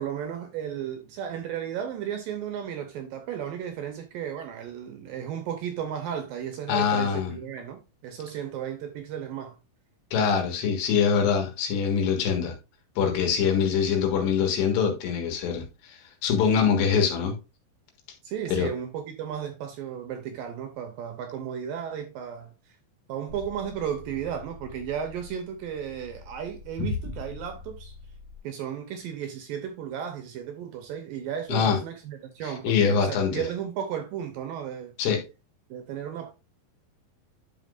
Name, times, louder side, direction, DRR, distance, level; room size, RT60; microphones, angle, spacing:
voice 1, 0.0-9.6 18.2-22.8 23.1-28.0 28.4-34.9 35.7-36.3, right 9 dB, 80° right, 2.1 m, -34 dB
voice 2, 6.7-7.4 10.1-12.6 13.0-17.3 18.6-18.7 31.5-31.8 32.4-33.4 35.0-35.2, left 6 dB, 90° left, 3.8 m, -24 dB
sound 1, 23.3-28.4, left 4 dB, 70° left, 1.6 m, -39 dB
10.5 x 5.9 x 2.5 m
omnidirectional pair, 4.8 m